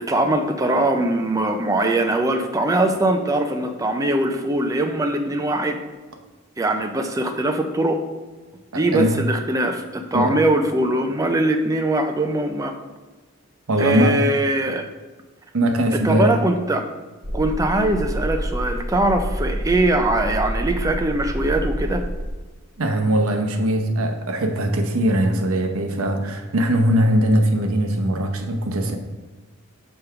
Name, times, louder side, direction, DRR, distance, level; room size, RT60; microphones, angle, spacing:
voice 1, 0.0-5.8 6.6-8.0 8.7-12.7 13.8-14.9 15.9-16.9 17.3-22.0, right 1 dB, 15° right, 5 dB, 0.4 m, -21 dB
voice 2, 8.7-9.2 10.1-10.3 13.7-14.2 15.5-16.3 22.8-29.0, right 1 dB, 70° right, 4 dB, 0.7 m, -20 dB
sound 1, 17.2-22.3, equal, 50° right, 1.4 m, -27 dB
5.3 x 3.4 x 5.7 m, 1.2 s
head